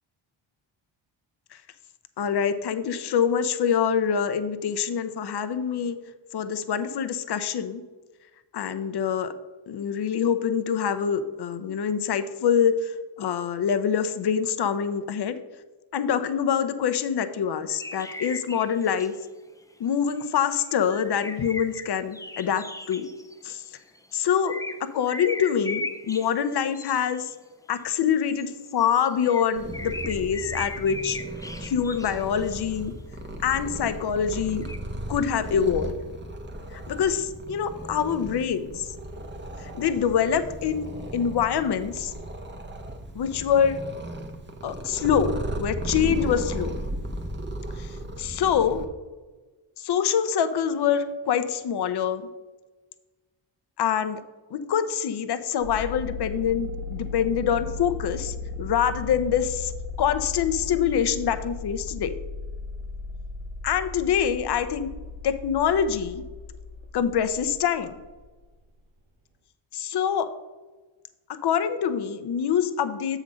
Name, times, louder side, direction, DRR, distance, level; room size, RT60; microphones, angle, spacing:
voice 1, 2.2-6.0 6.3-7.8 8.5-9.3 9.7-15.4 15.9-19.2 19.8-23.1 23.4-23.6 24.1-27.3 27.7-31.2 31.6-33.0 33.4-34.7 35.1-36.0 36.7-38.9 39.6-42.1 43.1-43.8 44.6-46.7 47.8-48.9 49.8-52.3 53.8-54.2 54.5-59.7 60.0-62.2 63.6-64.9 65.2-66.3 66.9-67.9 69.7-70.3 71.3-73.2, left 8 dB, 55° left, 11 dB, 0.7 m, -25 dB
sound 1, 17.7-19.2 20.2-24.1 24.4-27.3 28.3-32.8 34.4-34.8, left 2 dB, 5° left, 0.5 m, -38 dB
Purr, 29.5-48.9, right 1 dB, 25° right, 1.0 m, -36 dB
sound 2, 55.6-68.3, left 3 dB, 80° right, 1.1 m, -36 dB
7.2 x 3.9 x 6.1 m, 1.2 s
cardioid pair, 55°, 49 cm